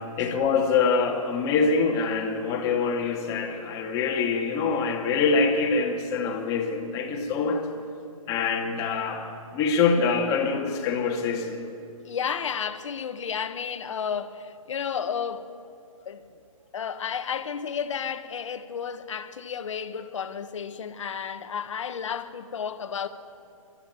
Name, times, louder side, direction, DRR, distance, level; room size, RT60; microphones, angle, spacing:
voice 1, 0.2-7.7 8.3-11.6, left 4 dB, 20° left, 2.0 m, -25 dB
voice 2, 12.0-15.5 16.0-16.2 16.7-23.1, left 7 dB, 60° left, 1.3 m, -32 dB
25.5 x 13.0 x 9.0 m
hypercardioid pair, 160°, 18 cm